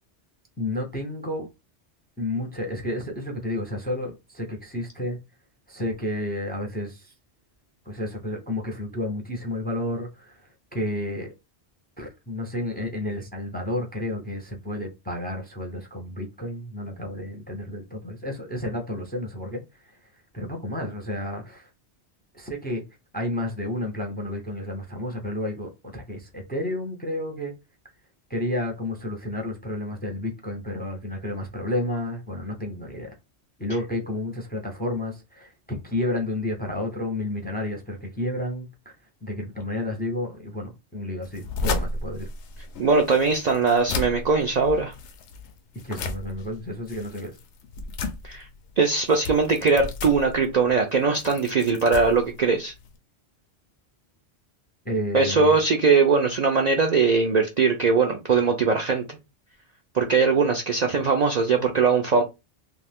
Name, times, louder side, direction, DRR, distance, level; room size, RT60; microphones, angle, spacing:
voice 1, 0.6-1.5 2.2-5.2 5.7-7.1 7.9-10.4 10.7-11.3 12.0-19.6 20.3-21.7 22.3-22.8 23.1-27.5 28.3-33.1 33.6-39.0 39.2-42.3 45.8-47.3 54.8-55.6, left 1 dB, 10° left, 0.5 m, -31 dB
sound 1, 41.2-53.0, left 3 dB, 85° left, 0.9 m, -34 dB
voice 2, 42.8-44.9 48.2-48.4 48.8-52.7 55.1-59.0 59.9-62.2, right 4 dB, 55° right, 0.4 m, -21 dB
2.5 x 2.4 x 3.4 m
omnidirectional pair, 1.1 m